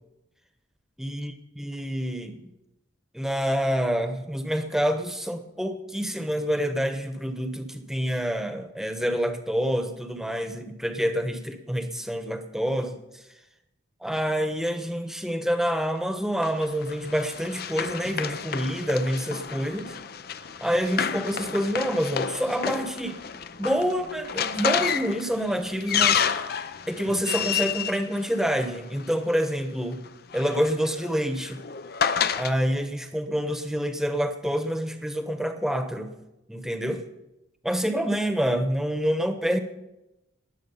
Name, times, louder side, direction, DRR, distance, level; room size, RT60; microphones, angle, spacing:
voice 1, 1.0-2.4 3.1-13.0 14.0-19.9 20.6-23.2 23.6-26.5 26.8-30.0 30.3-31.6 32.4-36.1 36.5-37.0 37.6-39.6, equal, ahead, 7 dB, 1.0 m, -27 dB
Run, 16.4-29.1 30.1-32.5, left 7 dB, 55° left, 0.6 m, -30 dB
20.0 x 7.6 x 5.7 m, 0.93 s
head